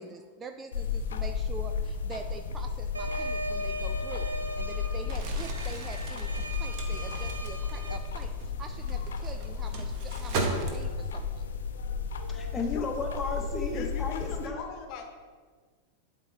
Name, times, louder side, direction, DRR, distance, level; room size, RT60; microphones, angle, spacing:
voice 1, 0.0-4.3 4.6-8.3 8.6-11.4, right 4 dB, 20° right, 6 dB, 0.4 m, -44 dB
sound 1, 0.7-14.5, left 5 dB, 65° left, 0.6 m, -33 dB
sound 2, 2.9-8.0, equal, 80° right, 0.6 m, -38 dB
Crumpling crinkling, 5.0-11.2, right 3 dB, 45° right, 1.0 m, -37 dB
voice 2, 12.3-14.6, left 4 dB, 15° left, 1 dB, 1.1 m, -34 dB
voice 3, 13.7-15.1, left 5 dB, 40° left, 4 dB, 1.1 m, -39 dB
11.5 x 4.3 x 3.2 m, 1.5 s
figure-of-eight pair, 90°, 0 cm